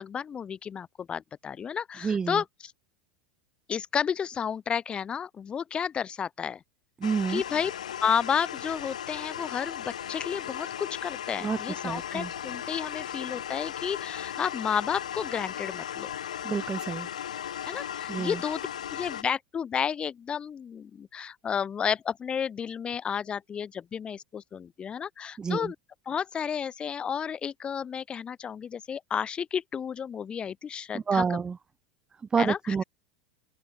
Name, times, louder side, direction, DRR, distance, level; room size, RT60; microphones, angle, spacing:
voice 1, 0.0-2.4 3.7-6.6 7.3-7.7 8.0-16.1 17.7-18.6 18.9-25.7 26.1-31.2 32.4-32.8, left 7 dB, 25° left, 3.1 m, -32 dB
voice 2, 2.0-2.4 7.0-7.4 11.4-11.6 11.8-12.3 16.4-17.1 18.1-18.4 25.4-25.7 30.9-31.6 32.3-32.8, right 5 dB, 20° right, 1.2 m, -28 dB
sound 1, 7.0-19.2, left 10 dB, 75° left, 5.7 m, -37 dB
open air
figure-of-eight pair, 85°, 4 cm